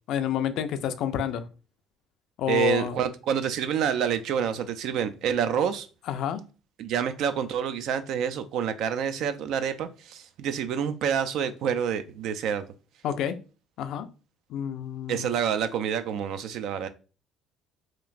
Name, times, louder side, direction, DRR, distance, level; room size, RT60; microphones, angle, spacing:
voice 1, 0.1-1.4 2.4-3.0 6.1-6.4 13.0-13.4 13.8-14.1 14.5-15.3, left 9 dB, 65° left, 0.3 m, -29 dB
voice 2, 2.5-5.9 6.8-12.6 15.1-16.9, right 8 dB, 65° right, 0.3 m, -28 dB
2.9 x 2.4 x 2.4 m
hypercardioid pair, 65°, 0 cm